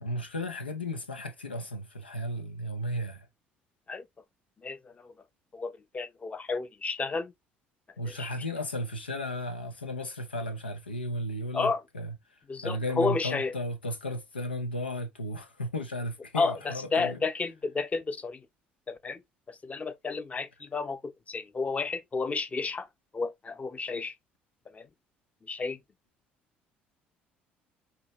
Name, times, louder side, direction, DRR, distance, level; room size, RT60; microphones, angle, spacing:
voice 1, 0.0-3.3 8.0-12.1 12.6-17.2, left 1 dB, 85° left, 0.6 m, -34 dB
voice 2, 4.6-5.1 5.5-7.3 8.2-8.3 11.5-11.8 12.5-13.5 16.3-18.5 18.9-19.2 19.5-22.9 23.1-24.1 24.7-24.9 25.5-25.8, left 4 dB, 25° left, 0.8 m, -31 dB
6.1 x 2.8 x 3.1 m
figure-of-eight pair, 55°, 5 cm